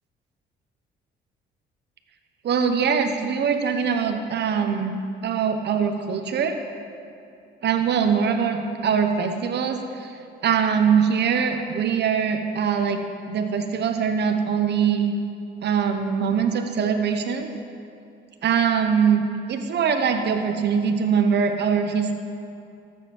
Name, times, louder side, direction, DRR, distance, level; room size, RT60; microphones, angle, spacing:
voice 1, 2.4-4.9 5.2-6.6 7.6-10.1 10.4-13.0 13.3-15.1 15.6-17.5 18.4-19.2 19.5-22.1, right 7 dB, 60° right, 6 dB, 1.0 m, -22 dB
13.5 x 7.3 x 6.1 m, 2.5 s
cardioid pair, 90°, 20 cm